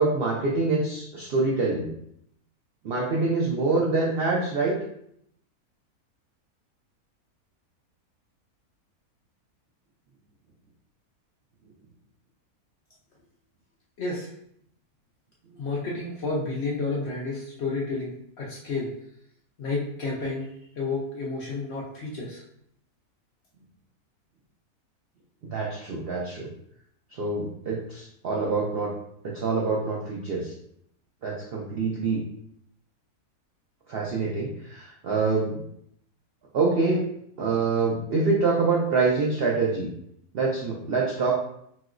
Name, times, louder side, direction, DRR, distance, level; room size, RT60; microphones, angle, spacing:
voice 1, 0.0-1.9 2.8-4.8 25.4-26.5 27.1-28.9 29.2-30.5 31.2-32.2 33.9-35.6 36.5-37.0 37.4-39.9 40.3-41.3, right 3 dB, 85° right, -3 dB, 0.5 m, -25 dB
voice 2, 14.0-14.3 15.6-18.9 19.6-22.4, left 3 dB, 65° left, -4 dB, 0.7 m, -31 dB
3.0 x 2.8 x 2.5 m, 0.72 s
omnidirectional pair, 1.6 m